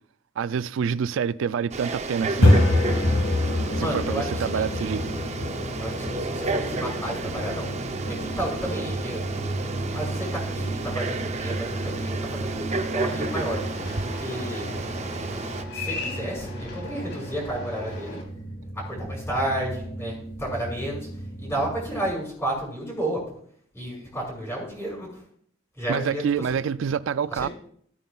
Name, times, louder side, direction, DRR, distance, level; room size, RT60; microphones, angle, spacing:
voice 1, 0.4-2.6 3.8-5.1 25.9-27.5, right 7 dB, 75° right, 0.4 m, -27 dB
Frog, 1.7-15.6, right 3 dB, 35° right, 0.7 m, -32 dB
sound 1, 2.2-22.1, left 1 dB, 80° left, 1.6 m, -29 dB
voice 2, 3.7-4.8 5.8-7.7 8.1-9.3 9.9-14.7 15.7-18.2 18.7-23.4 23.7-25.2 25.8-26.6 27.3-27.5, right 1 dB, 10° left, 5.3 m, -32 dB
sound 2, 12.9-18.2, left 2 dB, 60° left, 2.6 m, -38 dB
17.0 x 9.2 x 2.4 m
head